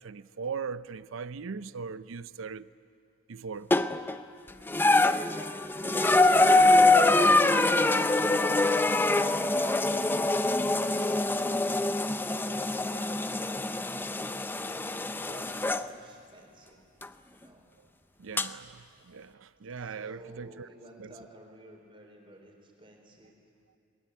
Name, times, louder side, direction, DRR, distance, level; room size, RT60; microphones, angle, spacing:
voice 1, 0.0-2.7 3.3-3.7 18.2-20.7 21.0-21.2, right 5 dB, 70° right, 0.6 m, -39 dB
sound 1, 3.7-4.2 4.7-15.9 17.0-17.1 18.4-18.5, left 2 dB, 10° left, 0.5 m, -24 dB
voice 2, 5.5-8.7 9.1-10.3 10.8-12.1 12.4-13.1 13.8-16.8 17.3-17.7 19.8-23.3, right 1 dB, 25° right, 4.0 m, -48 dB
21.5 x 20.5 x 9.2 m
head